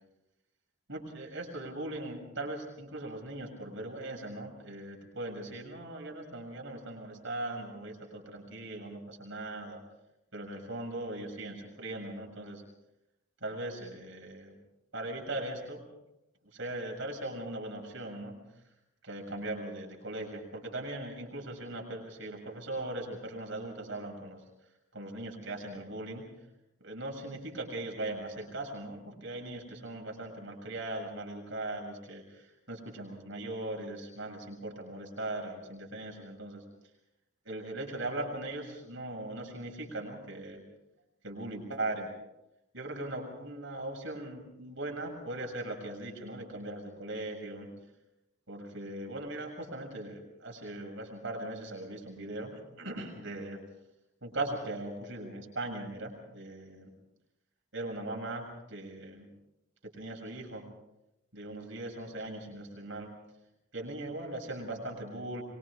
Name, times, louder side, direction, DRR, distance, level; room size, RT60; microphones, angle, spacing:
voice 1, 0.9-9.8 10.3-12.6 13.4-14.6 14.9-15.8 16.4-18.4 19.0-24.4 24.9-26.3 26.8-36.6 37.5-40.6 41.2-42.1 42.7-47.7 48.5-53.6 54.2-56.9 57.7-59.3 59.8-60.6 61.3-63.1 63.7-65.4, right 2 dB, 55° right, 1 dB, 7.0 m, -39 dB
25.0 x 24.5 x 5.0 m, 0.90 s
head